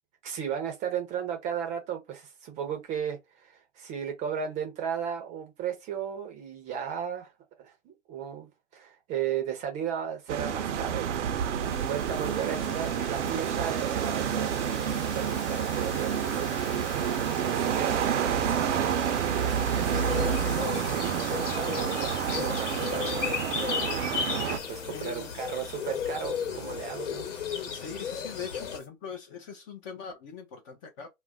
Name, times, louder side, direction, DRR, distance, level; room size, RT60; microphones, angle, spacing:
voice 1, 0.2-7.3 7.6-24.0 24.5-27.2, right 8 dB, 20° right, 0.6 m, -36 dB
sound 1, 10.3-24.6, right 8 dB, 60° right, 0.6 m, -29 dB
sound 2, 10.7-28.9, left 6 dB, 40° left, 1.1 m, -46 dB
sound 3, 19.9-28.8, left 7 dB, 65° left, 1.1 m, -34 dB
voice 2, 24.9-25.3 27.7-31.1, left 6 dB, 25° left, 0.5 m, -41 dB
2.5 x 2.0 x 3.5 m
hypercardioid pair, 125°, 40 cm